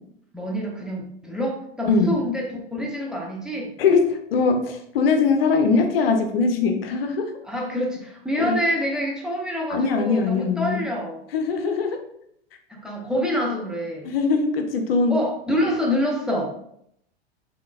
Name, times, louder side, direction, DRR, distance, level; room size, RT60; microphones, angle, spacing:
voice 1, 0.3-3.7 7.4-11.2 12.7-14.1 15.1-16.5, equal, ahead, -2 dB, 0.6 m, -26 dB
voice 2, 1.9-2.2 3.8-7.3 8.4-8.6 9.7-10.8 11.3-12.0 14.0-15.2, left 4 dB, 65° left, 6 dB, 0.6 m, -21 dB
3.7 x 3.4 x 2.3 m, 0.71 s
hypercardioid pair, 95°, 31 cm